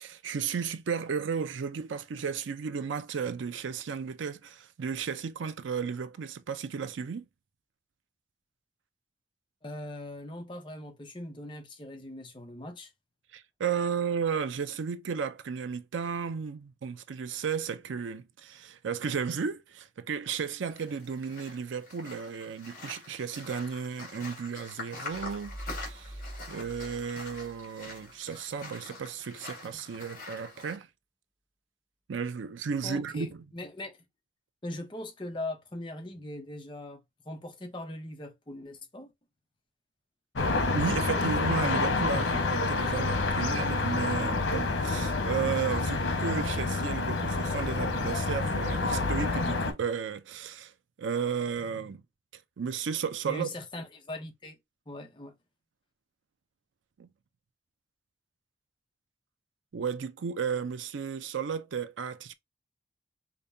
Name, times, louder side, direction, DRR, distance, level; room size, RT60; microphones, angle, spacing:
voice 1, 0.0-7.2 13.3-26.2 26.5-30.9 32.1-33.4 40.7-50.7 51.0-52.0 52.6-53.5 57.0-57.1 59.7-62.3, right 6 dB, 85° right, 0.4 m, -34 dB
voice 2, 9.6-12.9 32.8-34.0 34.6-37.0 37.3-39.1 51.7-52.0 53.3-54.6 54.9-55.4, left 1 dB, 25° left, 0.7 m, -40 dB
sound 1, 20.7-30.8, left 3 dB, 45° left, 1.9 m, -45 dB
sound 2, 25.1-28.0, right 1 dB, 15° right, 0.4 m, -44 dB
sound 3, 40.3-49.7, left 3 dB, 90° left, 0.9 m, -28 dB
5.1 x 2.2 x 2.6 m
head